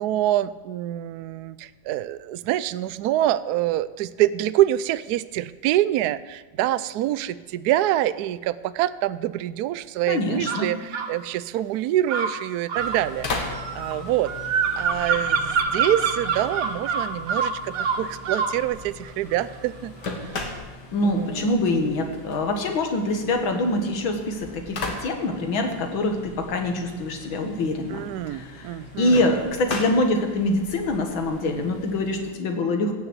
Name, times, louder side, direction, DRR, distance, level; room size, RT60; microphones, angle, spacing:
voice 1, 0.0-14.3 14.8-19.9 20.2-20.4 21.0-21.5 27.9-29.3, right 13 dB, 75° right, 15 dB, 0.9 m, -26 dB
voice 2, 10.1-10.7 20.9-28.0 28.3-32.9, left 2 dB, 85° left, 5 dB, 2.4 m, -25 dB
sound 1, 10.5-11.1 12.1-18.6, right 5 dB, 55° right, 1.3 m, -26 dB
sound 2, 12.8-32.3, left 3 dB, 60° left, 2.2 m, -38 dB
16.0 x 7.0 x 8.0 m, 1.3 s
omnidirectional pair, 2.1 m